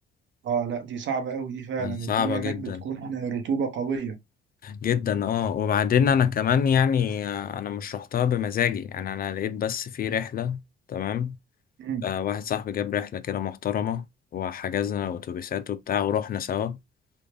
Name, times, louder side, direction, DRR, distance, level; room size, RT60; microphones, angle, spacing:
voice 1, 0.4-4.2 11.8-12.0, right 6 dB, 70° right, 1.0 m, -30 dB
voice 2, 1.8-2.8 4.6-10.6 10.9-11.4 12.0-14.0 14.3-16.8, left 8 dB, 50° left, 0.4 m, -26 dB
3.4 x 2.3 x 3.3 m
cardioid pair, 90°, 20 cm